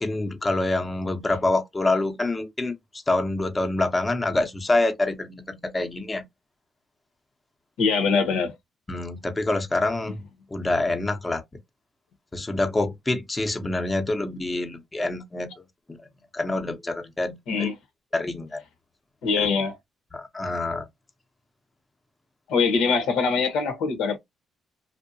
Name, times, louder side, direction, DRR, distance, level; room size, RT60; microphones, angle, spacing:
voice 1, 0.0-2.8 3.1-6.2 8.9-10.2 10.5-11.4 12.3-15.5 15.9-16.0 16.3-17.7 18.1-18.6 19.4-19.5 20.1-20.9, left 2 dB, 20° left, 0.6 m, -26 dB
voice 2, 7.8-8.5 17.5-17.7 19.2-19.8 22.5-24.2, left 5 dB, 90° left, 0.9 m, -23 dB
2.6 x 2.1 x 2.5 m
cardioid pair, 90°, 0 cm